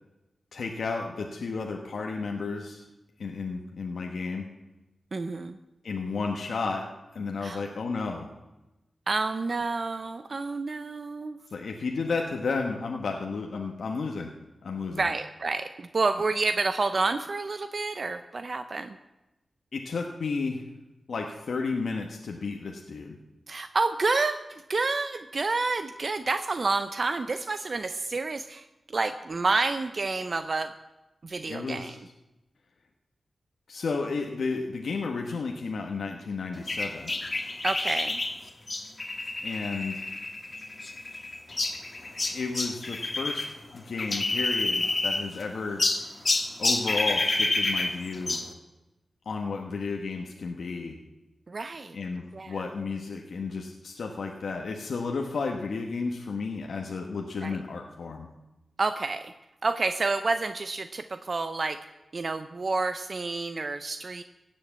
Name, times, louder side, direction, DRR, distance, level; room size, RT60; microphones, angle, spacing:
voice 1, 0.5-2.8 3.2-4.5 5.8-6.8 7.1-8.3 11.5-14.3 14.6-15.1 19.7-20.6 21.1-23.2 31.5-32.0 33.7-37.1 39.4-40.0 42.3-43.5 43.7-45.9 46.6-48.4 49.2-51.0 51.9-58.3, left 4 dB, 80° left, 2 dB, 1.2 m, -32 dB
voice 2, 5.1-5.6 7.4-7.6 9.1-11.4 14.9-19.0 23.5-30.7 31.2-32.0 37.6-38.2 51.5-52.0 52.3-52.6 57.4-57.6 58.8-59.3 59.6-61.8 62.1-64.2, right 3 dB, 50° right, 10 dB, 0.6 m, -29 dB
sound 1, 36.7-43.5 43.8-45.4 45.8-48.5, left 2 dB, 40° left, 1.6 m, -29 dB
16.5 x 7.7 x 7.5 m, 1.0 s
cardioid pair, 70°, 0 cm